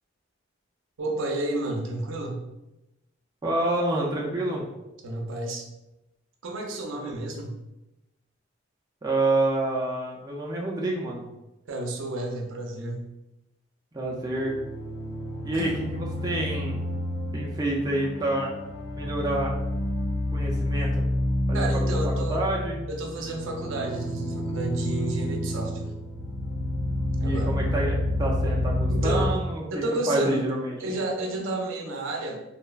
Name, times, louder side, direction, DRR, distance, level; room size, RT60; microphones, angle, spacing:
voice 1, 1.0-2.5 5.0-5.7 6.4-7.6 11.7-13.1 15.5-15.7 21.5-22.4 22.9-25.9 27.2-27.6 28.9-29.3 29.7-30.5 30.8-32.4, right 2 dB, 80° right, 1 dB, 0.5 m, -31 dB
voice 2, 3.4-4.7 6.9-7.0 9.0-11.3 13.9-14.5 15.4-16.8 17.3-18.5 19.0-19.6 20.3-21.0 21.5-22.0 22.3-22.8 27.2-30.8, right 2 dB, 20° right, -3 dB, 0.3 m, -28 dB
sound 1, 14.1-29.3, left 1 dB, 60° left, 0.4 m, -29 dB
3.1 x 2.0 x 2.3 m, 0.95 s
head